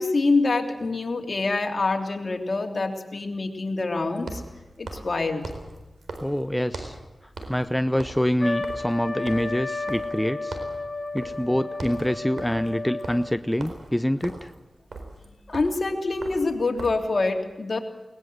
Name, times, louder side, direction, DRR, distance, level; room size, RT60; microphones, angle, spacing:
voice 1, 0.0-4.4 4.8-5.5 15.5-17.8, left 3 dB, 55° left, 3 dB, 3.2 m, -25 dB
sound 1, 0.8-0.9 4.2-7.1 7.4-7.7 7.9-10.2 10.5-10.8 11.2-11.4 11.7-17.1, right 2 dB, 80° right, 4.2 m, -40 dB
voice 2, 6.2-7.0 7.5-10.6 11.1-14.5, equal, 5° left, 11 dB, 0.7 m, -26 dB
Trumpet, 8.4-13.4, left 3 dB, 30° left, 2.0 m, -32 dB
21.5 x 19.5 x 7.9 m, 1.1 s
cardioid pair, 60°, 0 cm